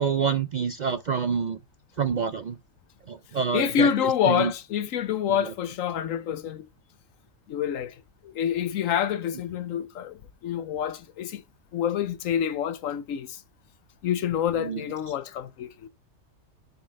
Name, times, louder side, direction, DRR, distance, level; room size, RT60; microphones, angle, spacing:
voice 1, 0.0-1.6 2.0-2.6 3.1-4.5 5.3-5.5 14.5-14.8, right 6 dB, 60° right, 0.4 m, -27 dB
voice 2, 3.5-6.6 7.5-7.9 8.2-10.2 10.4-11.4 11.7-13.4 14.0-15.9, left 9 dB, 90° left, 1.2 m, -27 dB
7.4 x 4.2 x 5.3 m
omnidirectional pair, 1.3 m